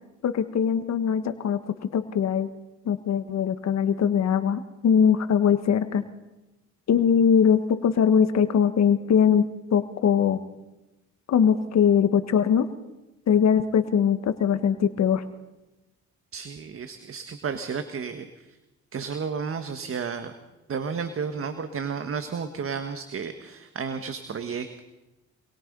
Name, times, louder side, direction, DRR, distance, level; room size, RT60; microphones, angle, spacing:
voice 1, 0.2-2.5 2.8-6.1 6.9-10.4 11.3-12.7 13.3-15.2, left 7 dB, 60° left, 10 dB, 1.5 m, -21 dB
voice 2, 16.3-18.3 18.9-20.3 20.7-24.8, right 6 dB, 45° right, 8 dB, 1.7 m, -32 dB
26.5 x 21.0 x 5.5 m, 1.0 s
cardioid pair, 90°, 30 cm